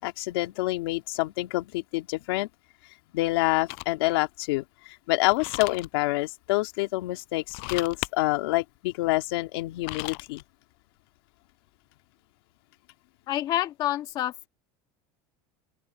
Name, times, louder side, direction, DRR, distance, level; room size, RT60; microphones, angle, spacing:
voice 1, 0.0-2.5 3.1-10.4, left 20 dB, 85° left, 2.4 m, -27 dB
sound 1, 3.7-4.1 5.3-5.9 7.4-8.1 9.6-10.4, left 33 dB, 55° left, 7.8 m, -35 dB
voice 2, 13.3-14.5, left 13 dB, 35° left, 1.7 m, -28 dB
open air
cardioid pair, 175°, 12 cm